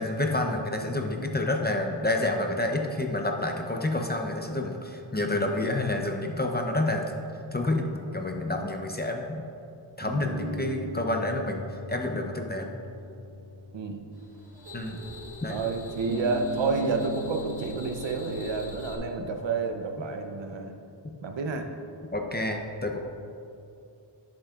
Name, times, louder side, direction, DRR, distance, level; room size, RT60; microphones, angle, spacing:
voice 1, 0.0-7.1 7.5-9.5 10.0-11.6 11.9-12.8 14.7-15.0 15.4-15.6 19.2-19.3 22.1-23.0, left 2 dB, 20° left, 3 dB, 0.6 m, -29 dB
sound 1, 5.3-9.2 10.0-15.1 16.0-20.2, right 1 dB, 25° right, 0.9 m, -41 dB
voice 2, 13.7-14.0 15.5-20.7 21.2-21.7, right 4 dB, 70° right, 5 dB, 0.7 m, -30 dB
sound 2, 14.1-19.0, equal, 55° right, 1.3 m, -43 dB
11.0 x 7.5 x 2.4 m, 2.6 s
wide cardioid pair, 90°, 46 cm